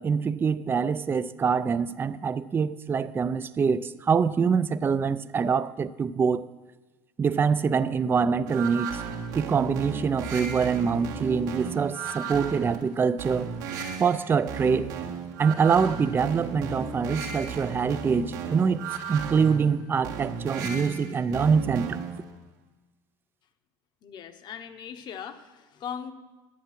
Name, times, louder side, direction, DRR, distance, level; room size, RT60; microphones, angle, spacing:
voice 1, 0.0-6.5 7.2-9.0 9.3-13.5 14.0-14.9 15.4-22.0, right 6 dB, 20° right, 0.4 m, -25 dB
sound 1, 8.5-22.3, right 6 dB, 85° right, 1.7 m, -35 dB
voice 2, 24.0-26.1, left 8 dB, 50° left, 1.1 m, -39 dB
10.5 x 8.2 x 6.0 m
supercardioid pair, 95°, 10 cm